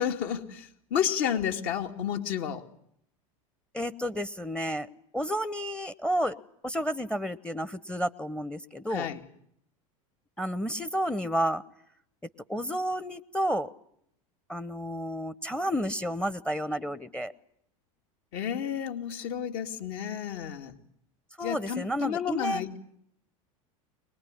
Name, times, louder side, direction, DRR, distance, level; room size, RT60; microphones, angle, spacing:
voice 1, 0.0-2.6 8.9-9.2 18.3-20.8 21.4-22.8, left 9 dB, 60° left, 5 dB, 2.4 m, -31 dB
voice 2, 3.7-4.9 5.1-6.4 6.6-9.1 10.4-11.6 12.5-13.7 14.5-17.3 21.4-22.6, equal, 5° left, 17 dB, 0.9 m, -31 dB
23.0 x 20.0 x 9.9 m, 0.71 s
hypercardioid pair, 90°, 18 cm